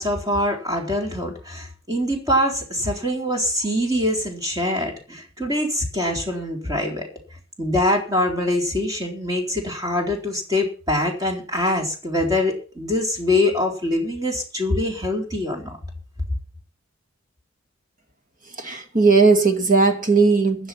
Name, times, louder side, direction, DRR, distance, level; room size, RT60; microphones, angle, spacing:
voice 1, 0.0-7.1 7.6-15.8, left 1 dB, 15° right, 4.2 m, -24 dB
voice 2, 18.6-20.7, right 4 dB, 40° right, 2.3 m, -17 dB
15.5 x 11.0 x 5.9 m
head